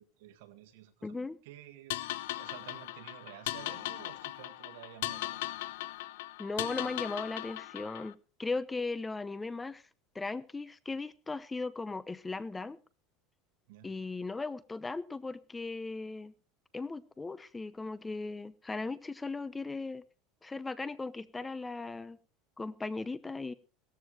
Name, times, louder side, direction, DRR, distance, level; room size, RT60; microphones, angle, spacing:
voice 1, 0.0-1.2 1.4-2.0 2.4-5.6 13.7-13.9, right 13 dB, 85° right, 1.9 m, -51 dB
voice 2, 1.0-1.4 6.4-8.1 8.4-9.8 10.1-12.8 13.8-16.3 16.7-20.0 20.4-22.2 22.6-23.5, left 3 dB, 10° left, 0.8 m, -37 dB
sound 1, 1.9-8.1, left 16 dB, 90° left, 0.7 m, -38 dB
18.0 x 14.0 x 3.2 m
supercardioid pair, 135°, 0 cm